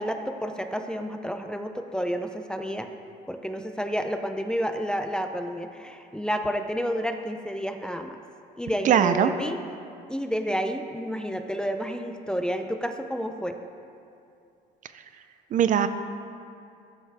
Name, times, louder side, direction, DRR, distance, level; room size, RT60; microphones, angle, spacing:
voice 1, 0.0-2.9 3.3-8.2 8.6-9.6 10.1-13.6, equal, 5° left, 6 dB, 0.5 m, -30 dB
voice 2, 8.8-9.3 15.5-15.9, right 9 dB, 50° right, 10 dB, 0.5 m, -20 dB
13.0 x 7.1 x 3.4 m, 2.5 s
cardioid pair, 110°, 17 cm